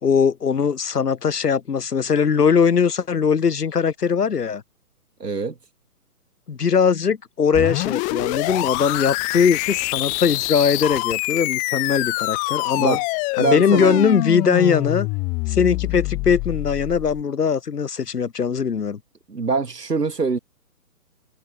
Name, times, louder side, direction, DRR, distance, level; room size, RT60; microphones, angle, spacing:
voice 1, 0.0-4.6 6.5-13.0 13.4-15.1 15.5-19.0, left 6 dB, 80° left, 1.7 m, -20 dB
voice 2, 5.2-5.6 12.8-13.0 13.4-14.0 19.3-20.4, right 4 dB, 85° right, 3.5 m, -23 dB
sound 1, 7.5-17.2, left 27 dB, 15° left, 1.3 m, -25 dB
figure-of-eight pair, 140°, 47 cm